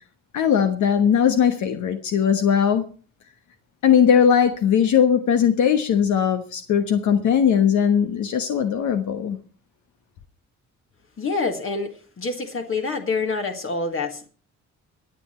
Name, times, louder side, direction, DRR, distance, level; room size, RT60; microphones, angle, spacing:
voice 1, 0.3-2.8 3.8-9.4, left 8 dB, 75° left, 8 dB, 1.3 m, -19 dB
voice 2, 11.2-14.3, left 4 dB, 45° left, 4 dB, 1.9 m, -27 dB
23.5 x 7.9 x 4.4 m, 0.39 s
cardioid pair, 90°, 30 cm